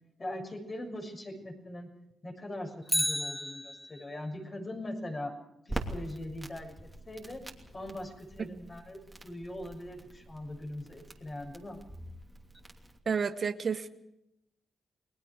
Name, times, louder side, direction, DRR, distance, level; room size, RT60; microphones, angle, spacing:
voice 1, 0.2-1.9 2.2-5.3 5.6-7.4 7.7-11.8, left 1 dB, 35° left, 2 dB, 6.5 m, -41 dB
Bicycle, 2.8-4.2 12.5-12.6, equal, 5° left, 1.1 m, -33 dB
Crackle, 5.7-13.0, right 1 dB, 15° right, 2.9 m, -44 dB
voice 2, 13.1-13.9, right 6 dB, 50° right, 10 dB, 1.0 m, -30 dB
30.0 x 20.5 x 4.8 m, 0.82 s
cardioid pair, 85°, 0 cm